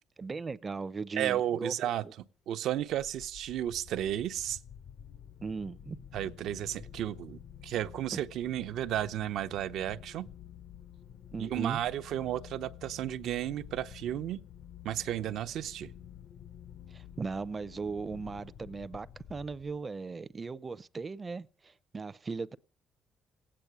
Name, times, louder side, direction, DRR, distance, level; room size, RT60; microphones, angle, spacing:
voice 1, 0.2-1.9 5.4-6.0 11.3-11.8 16.9-22.6, right 4 dB, 25° right, 0.6 m, -38 dB
voice 2, 1.2-2.1 2.5-4.6 6.1-10.3 11.4-14.4 14.8-15.9, right 11 dB, 75° right, 0.8 m, -33 dB
sound 1, 2.8-20.0, left 9 dB, 60° left, 0.7 m, -50 dB
17.5 x 8.8 x 8.1 m
cardioid pair, 110°, 0 cm